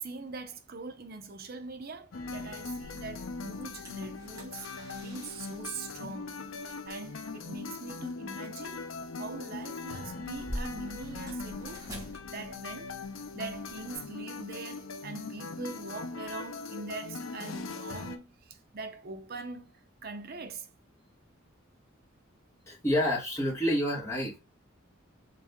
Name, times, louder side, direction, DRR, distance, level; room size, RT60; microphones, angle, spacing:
voice 1, 0.0-8.9 9.2-11.9 12.3-12.9 13.3-19.8 20.0-20.7, right 3 dB, 45° right, 0.6 m, -42 dB
sound 1, 2.1-18.2, left 4 dB, 70° left, 0.6 m, -40 dB
sound 2, 2.8-14.0, equal, 15° right, 1.2 m, -48 dB
voice 2, 22.7-24.4, equal, 15° left, 1.4 m, -28 dB
4.1 x 2.7 x 3.5 m
head